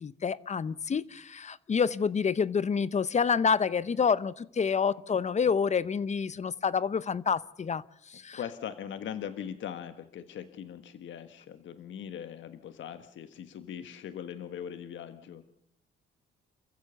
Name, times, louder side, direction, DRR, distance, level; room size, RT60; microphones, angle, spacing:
voice 1, 0.0-8.4, left 6 dB, 35° left, 18 dB, 0.7 m, -28 dB
voice 2, 8.3-15.4, left 9 dB, 70° left, 10 dB, 1.4 m, -40 dB
28.0 x 15.0 x 6.9 m, 0.76 s
cardioid pair, 90°, 20 cm